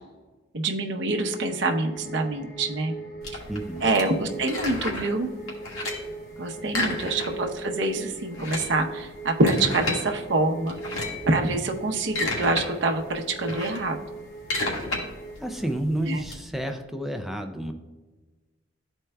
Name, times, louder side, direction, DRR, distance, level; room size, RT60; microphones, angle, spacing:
voice 1, 0.5-2.9 3.8-5.3 6.4-10.8 11.2-14.0 16.0-16.2, right 2 dB, 60° right, 3 dB, 0.7 m, -26 dB
sound 1, 1.1-15.7, right 3 dB, 40° left, 1.6 m, -40 dB
sound 2, 3.2-5.2 5.5-6.1 6.7-7.6 7.8-7.9 8.2-10.0 10.7-11.3 11.8-12.6 13.0-16.3, left 2 dB, 85° left, 1.5 m, -31 dB
voice 2, 3.5-3.8 6.4-7.0 15.4-17.7, right 1 dB, ahead, 5 dB, 0.3 m, -31 dB
12.0 x 4.5 x 2.2 m, 1.2 s
head